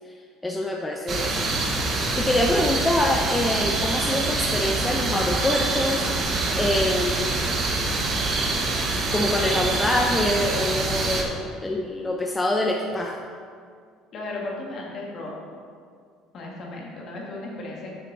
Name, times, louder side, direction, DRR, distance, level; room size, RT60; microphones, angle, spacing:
voice 1, 0.4-1.5 2.2-6.1 6.5-7.3 9.1-13.1, left 1 dB, 15° left, 1 dB, 0.7 m, -25 dB
sound 1, 1.1-11.2, right 3 dB, 45° right, 1.2 m, -25 dB
voice 2, 14.1-15.3 16.3-17.9, left 2 dB, 55° left, -2 dB, 2.1 m, -35 dB
7.6 x 6.3 x 4.2 m, 2.1 s
supercardioid pair, 80°, 0 cm